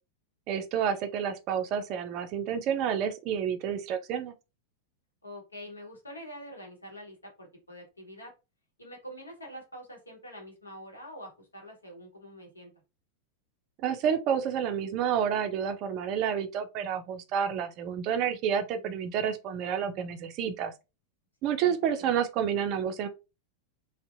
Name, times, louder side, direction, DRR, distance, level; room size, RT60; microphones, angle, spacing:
voice 1, 0.5-4.3 13.8-20.7 21.4-23.1, right 8 dB, 40° right, 0.3 m, -29 dB
voice 2, 5.2-8.3 8.8-12.7 21.4-22.1, equal, 80° left, 0.9 m, -46 dB
2.6 x 2.0 x 2.4 m
figure-of-eight pair, 90°, 0 cm